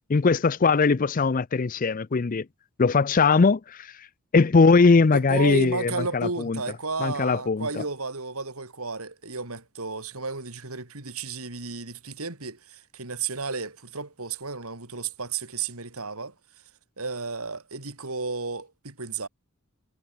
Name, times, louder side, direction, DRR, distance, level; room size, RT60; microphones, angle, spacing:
voice 1, 0.1-2.5 2.8-3.9 4.3-6.6 7.0-7.8, left 4 dB, 35° left, 0.5 m, -20 dB
voice 2, 5.1-16.3 17.0-19.3, right 4 dB, 75° right, 3.5 m, -33 dB
head